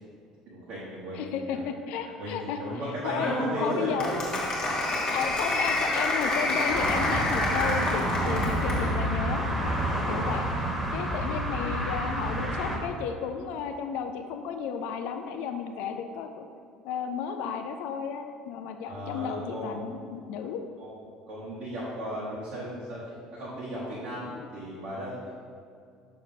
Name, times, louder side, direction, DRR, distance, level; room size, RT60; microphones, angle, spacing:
voice 1, 0.5-1.7 2.0-4.1 10.1-10.3 18.8-19.9 20.8-20.9 21.3-25.3, equal, 55° right, -8 dB, 1.2 m, -36 dB
voice 2, 1.1-2.6 3.0-3.3 3.6-4.1 5.1-9.5 10.1-10.5 10.9-16.5 16.8-20.6 24.3-24.5, left 7 dB, 60° left, 6 dB, 0.3 m, -33 dB
Applause, 3.1-8.9, left 2 dB, 30° left, 1.3 m, -28 dB
sound 1, 6.7-12.8, right 1 dB, 15° right, 1.4 m, -29 dB
6.4 x 5.6 x 2.7 m, 2.3 s
figure-of-eight pair, 60°, 2 cm